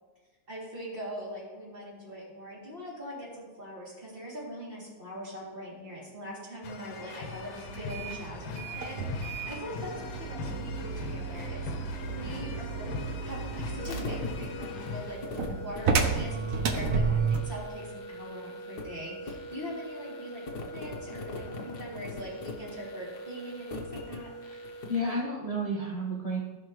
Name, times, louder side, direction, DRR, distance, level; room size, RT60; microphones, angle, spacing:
voice 1, 0.5-20.4 20.7-24.3, equal, 25° right, -6 dB, 3.0 m, -42 dB
sound 1, 6.6-15.2, left 5 dB, 75° left, 1.6 m, -41 dB
sound 2, 7.7-17.6, right 5 dB, 55° right, 1.0 m, -32 dB
sound 3, 13.8-25.1, left 1 dB, 55° left, 1.6 m, -41 dB
voice 2, 24.4-26.4, equal, 30° left, -3 dB, 0.6 m, -32 dB
15.5 x 5.7 x 3.2 m, 1.3 s
omnidirectional pair, 2.2 m